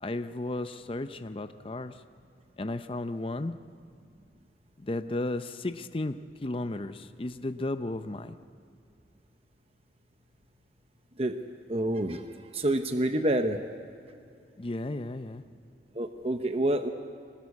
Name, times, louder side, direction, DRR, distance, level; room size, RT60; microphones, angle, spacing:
voice 1, 0.0-2.0 2.6-3.6 4.8-6.2 6.4-8.4 14.6-15.4, left 2 dB, 30° left, 10 dB, 0.6 m, -34 dB
voice 2, 11.7-12.2 12.5-13.6 15.9-16.9, right 1 dB, 35° right, 7 dB, 0.9 m, -27 dB
24.5 x 20.0 x 8.5 m, 2.5 s
head